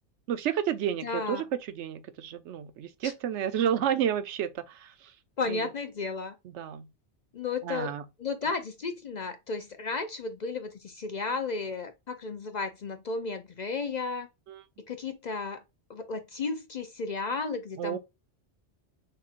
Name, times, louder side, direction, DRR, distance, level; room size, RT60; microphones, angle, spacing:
voice 1, 0.3-5.1 5.5-5.7 6.4-6.9 7.6-8.0 14.5-14.6 17.8-18.0, right 9 dB, 80° right, 0.9 m, -31 dB
voice 2, 1.0-1.4 3.0-3.1 5.4-6.3 7.3-7.9 8.2-14.3 14.9-15.6 15.9-18.0, left 4 dB, 50° left, 0.6 m, -33 dB
6.4 x 2.7 x 2.4 m
omnidirectional pair, 1.2 m